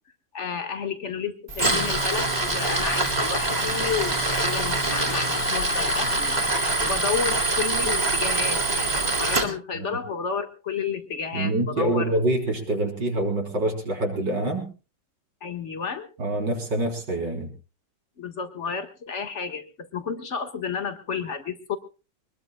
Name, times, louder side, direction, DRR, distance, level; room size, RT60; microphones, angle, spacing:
voice 1, 0.3-12.1 15.4-16.1 18.2-21.8, left 6 dB, 40° left, 7 dB, 1.8 m, -31 dB
Tools, 1.5-9.5, right 2 dB, 25° right, 2.4 m, -24 dB
voice 2, 11.3-14.7 16.2-17.5, right 1 dB, 90° right, 1 dB, 4.4 m, -25 dB
23.5 x 20.5 x 2.3 m, 0.32 s
omnidirectional pair, 1.9 m